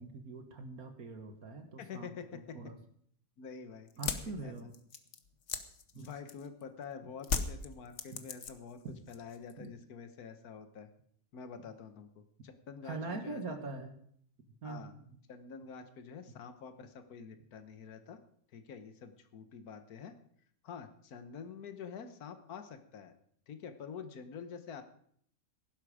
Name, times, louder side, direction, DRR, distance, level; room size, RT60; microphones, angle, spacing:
voice 1, 0.0-2.8 4.0-4.7 5.9-6.1 8.1-8.2 8.8-9.0 9.6-9.7 12.8-13.9 14.6-15.2, right 3 dB, 65° right, 6 dB, 2.0 m, -43 dB
voice 2, 1.8-2.3 3.4-4.1 4.4-4.5 5.9-8.8 9.1-10.9 11.3-13.6 14.6-14.9 15.3-18.2 18.5-20.1 20.6-23.1 23.5-24.8, left 6 dB, 70° left, 8 dB, 1.7 m, -47 dB
sound 1, 3.9-6.6 7.2-8.8 9.1-9.7, left 5 dB, 50° left, 1.3 m, -37 dB
16.5 x 11.5 x 5.0 m, 0.64 s
omnidirectional pair, 1.7 m